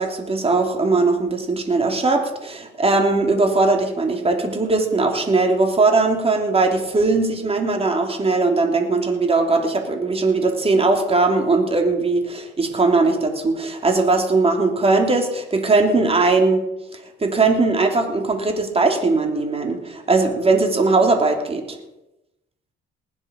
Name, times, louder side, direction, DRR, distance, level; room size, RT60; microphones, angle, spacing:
voice 1, 0.0-16.6 16.9-21.8, right 3 dB, 30° right, 4 dB, 3.0 m, -19 dB
19.5 x 10.0 x 5.3 m, 0.91 s
cardioid pair, 90°, 20 cm